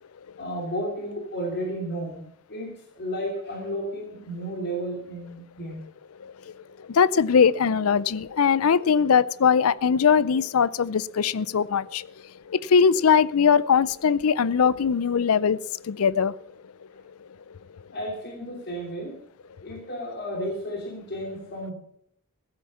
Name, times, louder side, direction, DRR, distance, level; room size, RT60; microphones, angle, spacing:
voice 1, 0.4-5.8 17.9-21.7, equal, 50° left, 3.0 m, -33 dB
voice 2, 6.2-6.5 6.9-12.1 12.5-15.6 15.8-16.4, left 6 dB, 70° left, 0.5 m, -21 dB
15.5 x 8.5 x 7.0 m
head